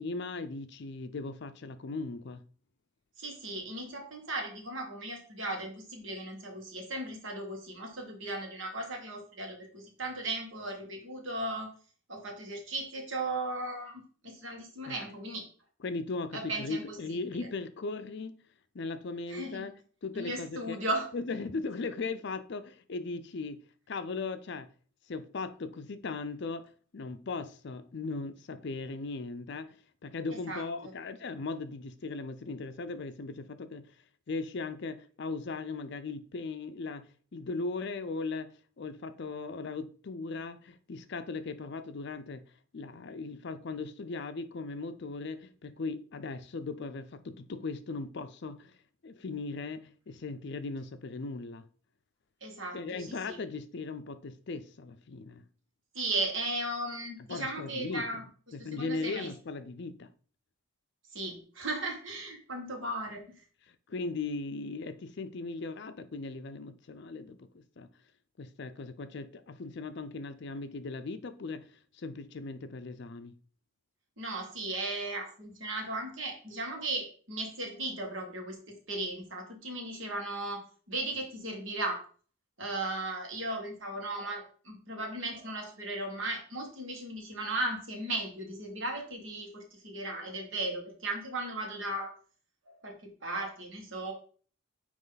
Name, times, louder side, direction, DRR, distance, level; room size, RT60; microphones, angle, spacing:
voice 1, 0.0-2.4 14.9-15.1 15.8-18.4 18.7-19.7 20.0-20.8 21.1-23.6 23.9-24.7 25.1-26.6 26.9-29.8 30.0-33.8 34.3-38.5 38.8-42.4 42.7-48.7 49.0-51.6 52.7-55.4 57.3-58.1 58.5-60.1 63.7-67.9 68.4-71.7 71.9-73.3, left 3 dB, 55° left, 0.5 m, -38 dB
voice 2, 3.2-11.7 12.1-15.4 16.3-17.5 19.3-19.7 20.1-21.1 30.3-30.9 52.4-53.4 55.9-58.2 58.6-59.3 61.1-63.2 74.2-82.0 82.6-92.1 92.7-94.1, right 2 dB, 65° right, 1.8 m, -36 dB
9.3 x 3.1 x 4.0 m
head